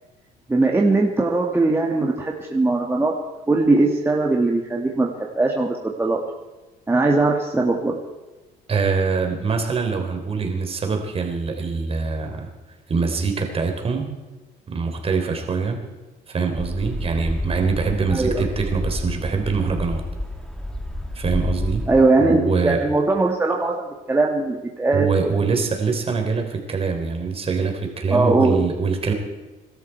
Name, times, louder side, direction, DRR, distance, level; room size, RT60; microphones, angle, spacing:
voice 1, 0.5-3.1 3.5-5.1 5.4-6.2 6.9-8.0 18.1-18.4 21.9-25.4 28.1-28.7, right 2 dB, 15° right, -1 dB, 1.8 m, -20 dB
voice 2, 8.7-12.5 12.9-14.1 14.7-15.8 16.3-20.0 21.2-21.8 22.2-22.8 24.9-29.1, right 4 dB, 35° right, 4 dB, 3.4 m, -24 dB
sound 1, 16.6-22.0, left 1 dB, 5° left, 1.9 m, -29 dB
24.5 x 12.5 x 4.6 m, 1.2 s
cardioid pair, 110°, 17 cm